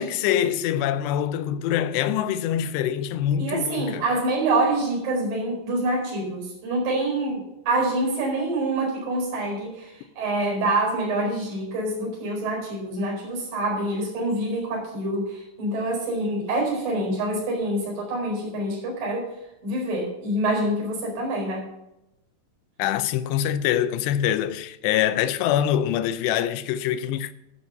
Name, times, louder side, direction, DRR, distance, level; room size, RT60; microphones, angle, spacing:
voice 1, 0.0-4.1 22.8-27.3, left 10 dB, 80° left, 2.7 m, -24 dB
voice 2, 3.4-19.2 19.6-21.6, right 2 dB, 50° right, 6.2 m, -26 dB
12.5 x 7.5 x 5.7 m
omnidirectional pair, 5.0 m